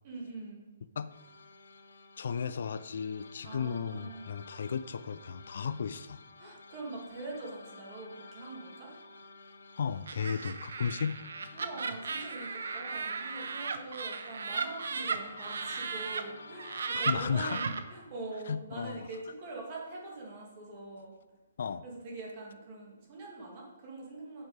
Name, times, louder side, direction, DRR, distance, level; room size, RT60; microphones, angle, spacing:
voice 1, 0.0-0.6 3.4-4.3 6.4-8.9 11.5-21.1 21.8-24.4, right 2 dB, 25° right, -2 dB, 2.0 m, -43 dB
sound 1, 1.1-17.4, left 3 dB, 75° left, 1.0 m, -52 dB
voice 2, 2.2-6.2 9.8-11.2 16.9-17.6 18.5-19.1 21.6-21.8, left 6 dB, 50° left, 14 dB, 0.3 m, -34 dB
Laughter, 10.1-16.2 16.6-17.8, right 5 dB, 65° right, 0.7 m, -36 dB
7.7 x 6.1 x 4.7 m, 1.1 s
hypercardioid pair, 175°, 0 cm